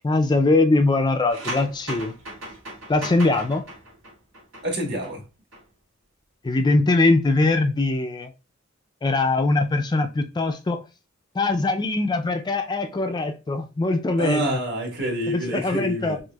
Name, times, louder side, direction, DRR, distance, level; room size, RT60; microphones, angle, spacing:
voice 1, 0.0-2.1 2.9-3.6 6.4-8.3 9.0-10.8 11.4-14.6 15.3-16.2, left 2 dB, 20° left, 0.3 m, -22 dB
sound 1, 1.3-5.1 5.4-5.6, right 1 dB, 75° right, 2.0 m, -37 dB
voice 2, 4.6-5.2 14.2-16.3, right 1 dB, 55° right, 1.5 m, -27 dB
5.8 x 2.4 x 2.2 m
head